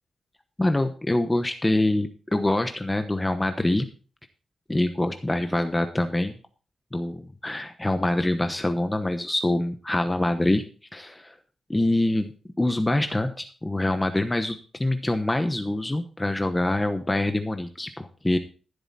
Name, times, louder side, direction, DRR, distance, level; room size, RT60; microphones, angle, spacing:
voice 1, 0.6-3.9 4.7-6.3 6.9-10.6 10.9-11.3 11.7-12.3 12.6-18.4, left 1 dB, 15° left, 7 dB, 1.0 m, -25 dB
14.5 x 8.0 x 4.2 m, 0.37 s
wide cardioid pair, 125°, 0 cm